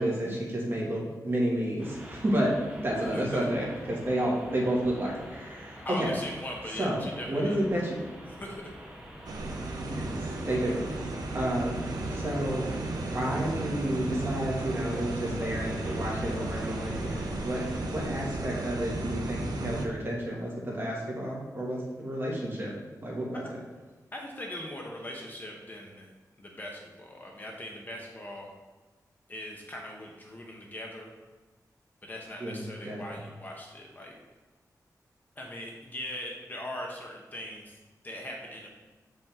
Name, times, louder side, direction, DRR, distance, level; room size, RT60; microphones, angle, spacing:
voice 1, 0.0-6.1 6.8-7.0 7.3-8.0 9.9-10.9 11.3-12.7 13.0-22.7 23.0-23.6 32.4-33.0, right 1 dB, 35° right, -4 dB, 1.8 m, -31 dB
sound 1, 1.8-18.0, equal, 15° right, 1.2 m, -47 dB
voice 2, 3.1-3.5 5.8-7.8 8.3-8.6 11.2-11.4 23.3-23.5 24.1-26.1 26.4-28.5 29.3-31.1 32.0-34.1 35.4-37.8 38.0-38.7, left 1 dB, 25° left, 0 dB, 0.9 m, -40 dB
sound 2, 9.3-19.9, right 2 dB, 85° right, 0.8 m, -34 dB
7.0 x 5.5 x 3.5 m, 1.3 s
wide cardioid pair, 155°, 7 cm